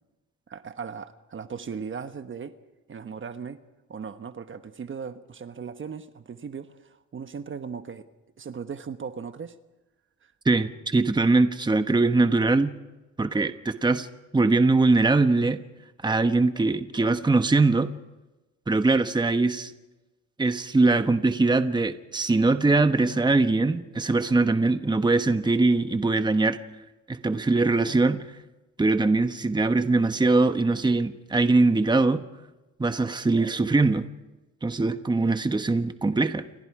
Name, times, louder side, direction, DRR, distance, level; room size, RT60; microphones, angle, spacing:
voice 1, 0.5-2.5 2.9-3.6 3.9-8.1 8.4-9.5 10.2-10.3, right 6 dB, 40° right, 1.2 m, -37 dB
voice 2, 10.4-12.7 13.2-14.1 14.3-15.6 16.0-17.9 18.7-19.7 20.4-26.6 27.1-28.2 28.8-32.2 32.8-34.1 34.6-36.4, right 3 dB, 15° right, 1.2 m, -22 dB
29.0 x 24.5 x 4.9 m
cardioid pair, 90°, 30 cm